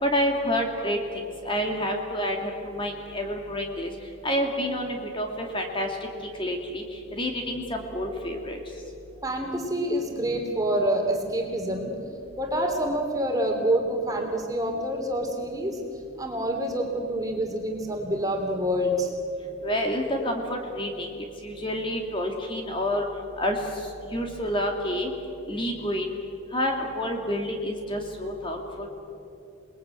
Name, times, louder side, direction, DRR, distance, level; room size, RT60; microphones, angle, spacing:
voice 1, 0.0-1.0 1.4-3.9 4.2-5.9 6.4-6.8 7.2-8.6 19.6-21.1 21.4-23.1 23.4-23.6 24.1-25.1 25.5-26.1 26.5-28.9, equal, 25° left, 2 dB, 2.3 m, -28 dB
voice 2, 9.2-12.0 12.4-15.8 16.2-19.1, right 1 dB, 15° right, 2 dB, 3.1 m, -27 dB
28.5 x 20.5 x 9.0 m, 2.7 s
head